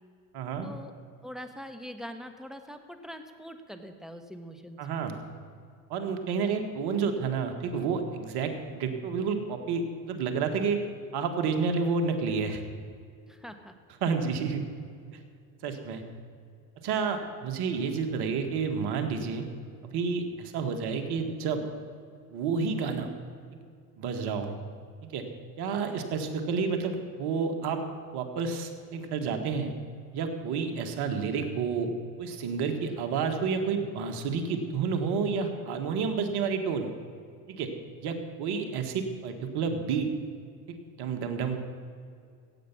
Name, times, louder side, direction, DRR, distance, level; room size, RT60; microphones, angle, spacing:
voice 1, 0.3-0.7 4.8-5.2 5.9-10.8 11.1-12.6 14.0-14.6 15.6-16.0 16.8-19.5 19.8-21.6 22.3-23.1 24.0-24.5 25.0-25.2 25.6-27.8 28.1-29.7 30.1-31.9 32.2-36.9 37.5-37.7 38.0-40.1 40.7-41.6, right 5 dB, 60° right, 6 dB, 1.8 m, -30 dB
voice 2, 1.2-4.8 13.3-13.7, equal, ahead, 7 dB, 1.3 m, -43 dB
16.0 x 8.2 x 6.1 m, 2.3 s
hypercardioid pair, 70°, 45 cm